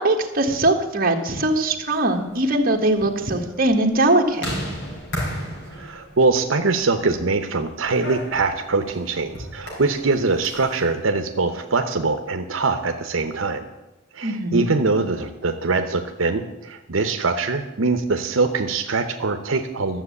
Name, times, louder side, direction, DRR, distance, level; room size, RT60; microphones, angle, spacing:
voice 1, 0.0-4.5 14.2-14.7, right 2 dB, 45° right, 3 dB, 1.5 m, -21 dB
sound 1, 1.7-10.8, equal, 60° left, 5.5 m, -35 dB
voice 2, 5.7-13.7 14.1-20.0, right 3 dB, 85° right, 6 dB, 0.9 m, -23 dB
12.5 x 7.4 x 8.4 m, 1.0 s
head